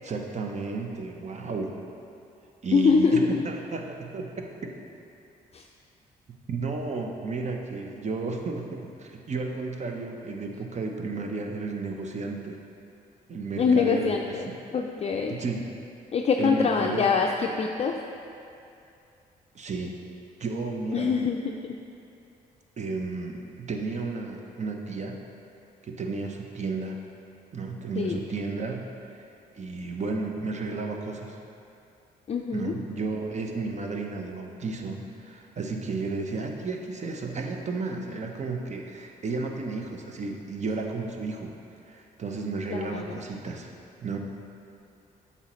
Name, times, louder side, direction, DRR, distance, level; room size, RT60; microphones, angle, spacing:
voice 1, 0.0-1.7 2.6-4.5 6.5-12.6 13.3-14.4 15.3-15.7 16.4-17.0 19.5-19.9 20.4-21.1 22.8-25.2 25.8-27.0 27.5-28.9 29.1-29.2 29.6-31.4 32.5-41.5 41.9-43.7 44.0-44.2, right 3 dB, 45° right, 2 dB, 0.8 m, -33 dB
voice 2, 2.7-3.3 5.5-5.6 13.6-14.5 14.7-15.4 16.1-18.0 20.9-21.8 28.0-28.2 32.3-32.8 42.7-43.1, left 5 dB, 40° left, 2 dB, 0.4 m, -24 dB
8.2 x 5.6 x 3.1 m, 2.6 s
cardioid pair, 70°, 17 cm